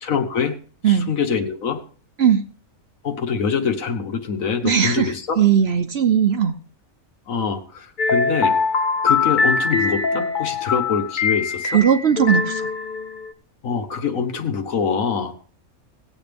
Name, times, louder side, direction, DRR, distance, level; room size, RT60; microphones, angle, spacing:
voice 1, 0.0-0.6 0.9-1.8 3.0-5.4 7.3-8.6 9.0-11.8 13.6-15.3, left 6 dB, 65° left, 7 dB, 1.6 m, -24 dB
voice 2, 4.6-6.5 11.6-12.7, right 8 dB, 55° right, 8 dB, 0.9 m, -18 dB
sound 1, 8.0-13.3, left 4 dB, 50° left, 0.6 m, -22 dB
17.5 x 8.2 x 3.5 m, 0.43 s
omnidirectional pair, 1.5 m